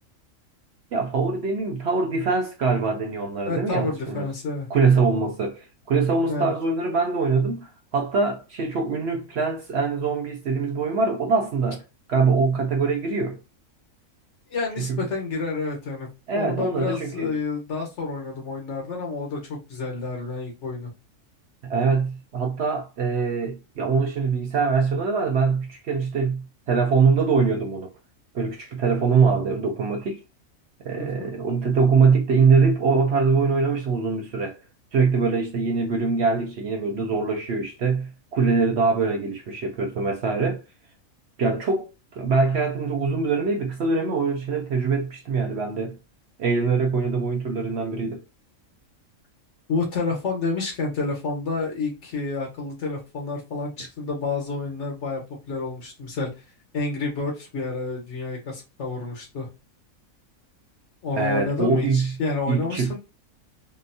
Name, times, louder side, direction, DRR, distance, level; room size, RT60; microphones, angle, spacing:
voice 1, 0.9-4.3 4.7-5.6 5.9-11.8 12.1-13.4 14.9-15.0 16.3-17.3 21.6-27.9 28.3-30.2 30.8-34.6 34.9-40.6 41.4-41.9 42.1-46.0 46.4-48.2 61.2-62.1 62.5-63.0, right 4 dB, 65° right, 0.7 m, -23 dB
voice 2, 3.4-4.7 6.3-6.5 14.5-20.9 31.0-31.4 49.7-56.3 56.7-59.5 61.0-63.0, left 3 dB, 60° left, 1.3 m, -29 dB
3.8 x 2.0 x 2.6 m
omnidirectional pair, 1.4 m